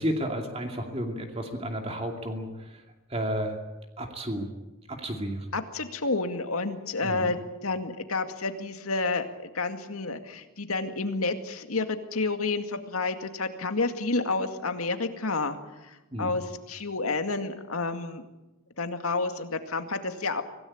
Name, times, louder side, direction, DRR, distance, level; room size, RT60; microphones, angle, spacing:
voice 1, 0.0-2.8 3.1-3.6 4.0-4.5 4.9-5.5 7.0-7.3 16.1-16.4, equal, 30° right, 3 dB, 2.5 m, -32 dB
voice 2, 5.5-18.2 18.8-20.4, left 3 dB, 85° left, 7 dB, 2.2 m, -30 dB
25.0 x 18.0 x 8.8 m, 1.1 s
head